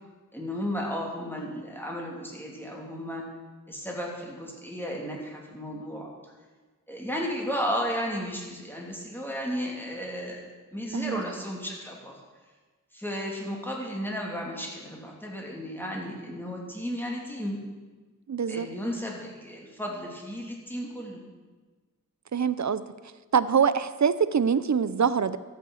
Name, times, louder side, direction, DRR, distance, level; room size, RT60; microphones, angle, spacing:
voice 1, 0.3-3.2 3.7-6.1 6.9-12.2 12.9-17.6 18.5-21.2, equal, 5° left, -2 dB, 3.1 m, -34 dB
voice 2, 18.3-18.7 22.3-22.8 23.3-25.4, right 7 dB, 60° right, 15 dB, 0.6 m, -24 dB
13.0 x 9.1 x 6.5 m, 1.3 s
wide cardioid pair, 65°, 32 cm